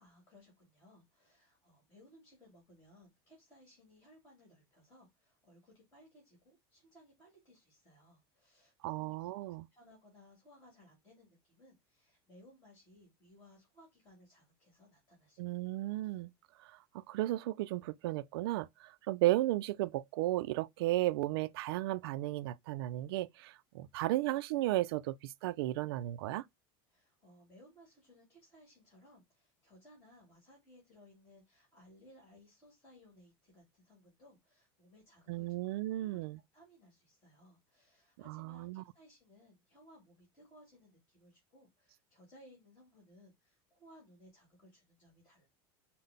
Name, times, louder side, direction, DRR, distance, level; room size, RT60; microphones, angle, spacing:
voice 1, 0.0-9.1 9.7-15.4 15.9-16.0 26.9-35.6 35.9-36.2 36.5-45.5, left 1 dB, 20° left, 2.2 m, -62 dB
voice 2, 8.8-9.7 15.4-16.3 16.6-16.7 17.1-26.4 35.3-36.4 38.3-38.8, right 16 dB, 85° right, 0.4 m, -34 dB
5.6 x 2.1 x 3.5 m
supercardioid pair, 155°, 13 cm